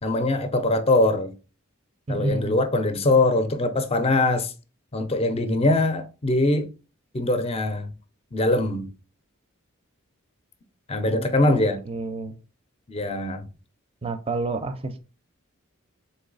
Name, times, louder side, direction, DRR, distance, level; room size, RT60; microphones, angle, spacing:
voice 1, 0.0-1.4 2.1-4.5 4.9-6.7 7.1-7.9 8.3-8.9 10.9-11.8 12.9-13.5, left 2 dB, 25° left, 0.5 m, -22 dB
voice 2, 2.1-2.6 11.1-12.3 14.0-15.0, right 2 dB, 25° right, 0.5 m, -30 dB
4.0 x 3.0 x 3.9 m
head